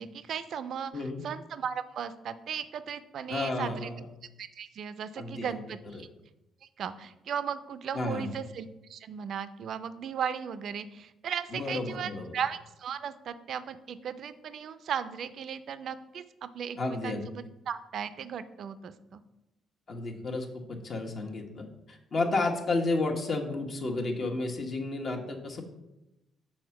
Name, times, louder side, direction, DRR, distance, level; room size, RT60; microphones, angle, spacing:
voice 1, 0.0-3.9 4.4-6.1 6.8-19.2, right 7 dB, 65° right, 12 dB, 0.5 m, -36 dB
voice 2, 0.9-1.2 3.3-4.0 5.2-5.5 5.9-6.0 7.9-8.3 11.5-12.3 16.8-17.2 19.9-25.6, left 2 dB, 50° left, 2 dB, 1.2 m, -32 dB
6.4 x 4.3 x 5.8 m, 0.93 s
cardioid pair, 90°, 0 cm